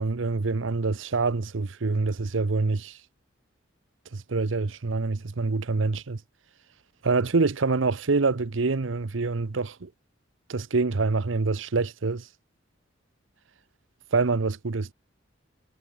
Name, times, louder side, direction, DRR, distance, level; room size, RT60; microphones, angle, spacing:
voice 1, 0.0-3.0 4.1-6.2 7.0-9.9 10.5-12.3 14.1-14.9, right 3 dB, 75° right, 0.8 m, -26 dB
head